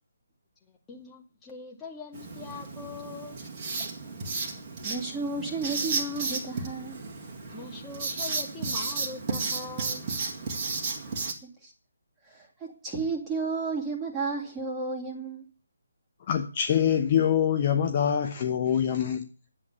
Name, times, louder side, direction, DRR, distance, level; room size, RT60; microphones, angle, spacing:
voice 1, 0.6-3.4 7.5-10.1, left 4 dB, 10° left, 2.0 m, -42 dB
Writing, 2.1-11.3, right 4 dB, 25° right, 2.0 m, -33 dB
voice 2, 4.8-7.0 11.2-11.7 12.3-15.4, right 4 dB, 10° right, 2.5 m, -33 dB
voice 3, 16.3-19.3, left 9 dB, 30° left, 0.9 m, -25 dB
10.5 x 8.0 x 8.0 m
figure-of-eight pair, 145°, 0 cm